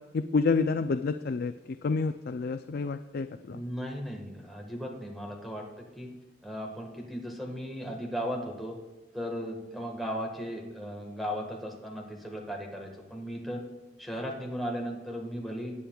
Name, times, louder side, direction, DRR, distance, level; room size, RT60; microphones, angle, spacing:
voice 1, 0.1-1.5 1.8-3.6, left 4 dB, 55° left, 9 dB, 0.4 m, -28 dB
voice 2, 3.5-5.6 6.0-6.1 6.4-8.7 9.1-13.6 14.0-15.7, equal, ahead, -1 dB, 1.5 m, -36 dB
18.0 x 8.5 x 2.3 m, 1.1 s
head